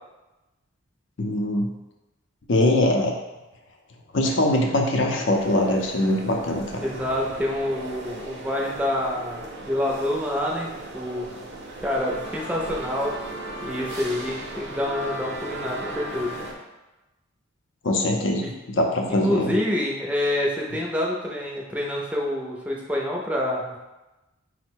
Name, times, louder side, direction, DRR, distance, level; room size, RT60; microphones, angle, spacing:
voice 1, 1.2-1.7 2.5-3.1 4.1-6.9 17.8-18.4 18.8-19.6, left 1 dB, 60° left, 1 dB, 0.6 m, -22 dB
sound 1, 5.3-16.5, right 1 dB, 55° right, 0.6 m, -37 dB
voice 2, 6.7-11.2 11.8-13.2 13.6-16.3 18.4-18.5 19.1-23.8, left 1 dB, 5° right, -2 dB, 0.5 m, -27 dB
4.3 x 2.1 x 4.4 m, 1.1 s
head